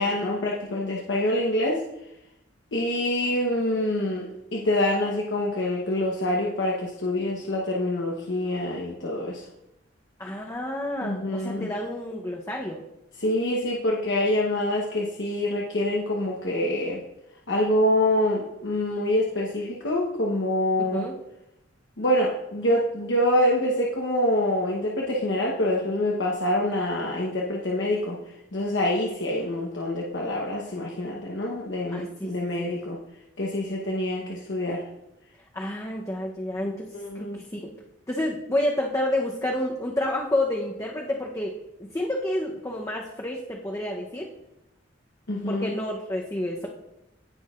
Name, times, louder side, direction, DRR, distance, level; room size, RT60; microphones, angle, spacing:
voice 1, 0.0-1.8 2.7-9.4 11.0-11.7 13.2-17.0 17.5-21.1 22.0-28.2 28.5-33.0 33.4-34.8 36.9-37.4 45.3-45.8, left 1 dB, 70° left, -2 dB, 1.0 m, -26 dB
voice 2, 10.2-12.8 20.9-21.2 31.9-32.8 35.5-37.7 38.1-41.5 41.8-44.3 45.5-46.7, left 1 dB, 15° left, -1 dB, 0.8 m, -29 dB
17.0 x 6.3 x 2.5 m, 0.88 s
head